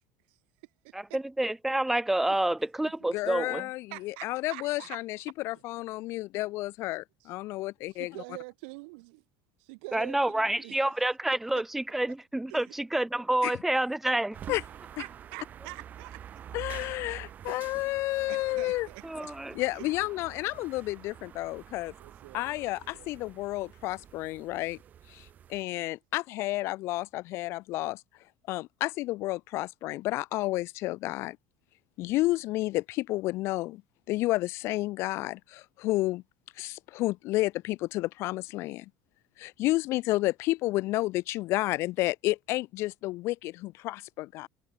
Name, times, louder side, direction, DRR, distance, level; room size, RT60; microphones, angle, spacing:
voice 1, 0.9-3.7 9.9-14.4 19.0-19.6, right 1 dB, 5° right, 0.7 m, -28 dB
voice 2, 3.1-5.2 5.4-8.2 13.4-13.5 14.5-14.6 16.5-18.9 19.5-21.9 22.3-24.8 25.1-28.0 28.5-31.4 32.0-33.8 34.1-36.2 36.6-38.9 39.4-44.5, left 18 dB, 45° left, 2.4 m, -31 dB
voice 3, 3.9-5.0 7.9-9.2 9.6-10.8 12.5-12.6 15.0-16.4 17.5-17.7 18.3-19.3 19.7-19.9 22.0-22.5 22.9-23.1 25.6-25.7, right 31 dB, 75° right, 2.5 m, -45 dB
sound 1, 14.3-25.6, right 9 dB, 25° right, 5.4 m, -47 dB
cardioid pair, 175°, 6 cm